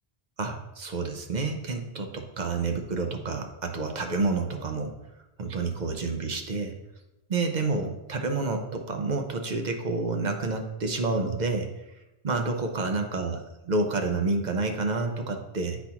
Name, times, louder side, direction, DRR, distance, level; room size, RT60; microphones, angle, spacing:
voice 1, 0.4-4.9 5.4-6.7 7.3-11.7 12.2-13.4 13.7-15.8, right 3 dB, 50° right, 5 dB, 0.7 m, -29 dB
9.4 x 4.1 x 2.8 m, 0.96 s
omnidirectional pair, 1.1 m